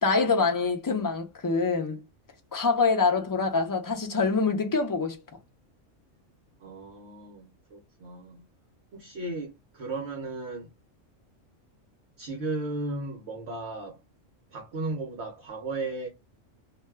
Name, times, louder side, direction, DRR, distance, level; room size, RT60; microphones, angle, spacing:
voice 1, 0.0-2.0 2.5-5.2, left 4 dB, 30° left, 0.4 m, -25 dB
voice 2, 6.6-8.4 8.9-10.7 12.2-14.0 14.5-16.1, right 2 dB, 60° right, 1.0 m, -35 dB
2.6 x 2.3 x 3.2 m
omnidirectional pair, 1.3 m